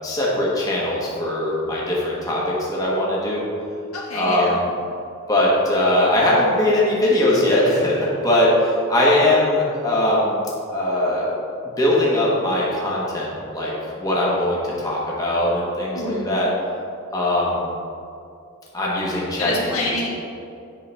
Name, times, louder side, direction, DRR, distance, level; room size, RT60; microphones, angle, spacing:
voice 1, 0.0-3.5 4.1-4.6 5.3-10.4 10.7-11.3 11.8-16.5 17.1-17.6 18.7-19.5, left 1 dB, 15° left, -6 dB, 1.3 m, -20 dB
voice 2, 3.9-4.6 15.9-16.4 19.4-20.1, left 2 dB, 70° left, -4 dB, 1.6 m, -27 dB
8.5 x 5.9 x 3.4 m, 2.5 s
head